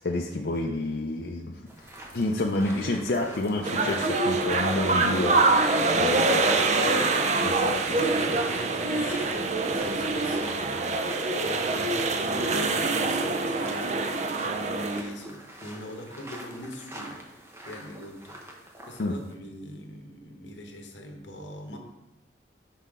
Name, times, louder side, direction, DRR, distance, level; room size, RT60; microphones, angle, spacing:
voice 1, 0.0-1.6 2.1-5.6 6.0-6.6 7.4-8.1 19.0-19.1, left 2 dB, 60° left, 0 dB, 0.5 m, -29 dB
sound 1, 1.7-19.3, right 1 dB, 15° right, 0.7 m, -45 dB
Breathing, 2.6-3.3 3.9-6.4 6.6-7.5 7.8-8.4 8.7-9.4 10.0-10.5, right 1 dB, 15° left, 1.1 m, -33 dB
sound 2, 3.6-15.0, right 3 dB, 40° right, 0.4 m, -25 dB
voice 2, 5.7-7.0 8.1-21.8, equal, 85° left, 3 dB, 1.0 m, -42 dB
5.7 x 5.5 x 3.6 m, 0.89 s
head